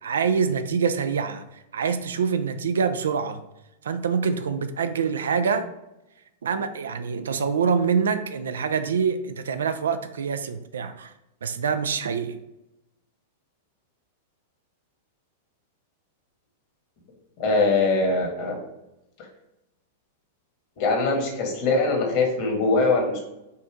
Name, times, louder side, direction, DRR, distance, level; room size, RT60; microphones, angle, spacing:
voice 1, 0.0-3.4 3.8-5.7 6.4-11.1 11.4-12.4, right 6 dB, 80° right, 10 dB, 0.4 m, -25 dB
voice 2, 17.4-18.6 20.8-23.2, left 3 dB, 50° left, 1 dB, 1.6 m, -22 dB
5.4 x 2.6 x 3.5 m, 0.90 s
hypercardioid pair, 105°, 0 cm